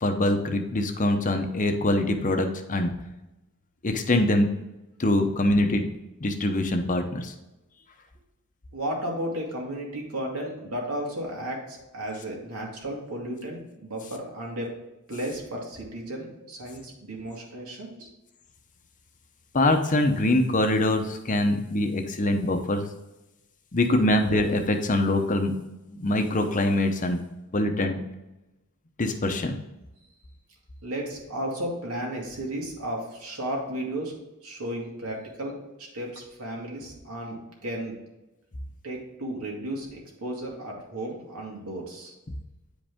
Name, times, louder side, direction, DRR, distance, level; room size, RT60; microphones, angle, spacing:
voice 1, 0.0-2.9 3.8-4.5 5.0-5.9 6.2-7.3 19.5-22.9 23.7-25.5 25.9-27.2 27.5-28.0 29.0-29.6, left 1 dB, 35° left, 6 dB, 0.8 m, -24 dB
voice 2, 8.7-14.7 15.1-18.1 30.8-34.2 34.4-38.0 38.8-42.1, right 1 dB, 80° right, -1 dB, 2.4 m, -34 dB
9.1 x 5.1 x 3.6 m, 0.97 s
head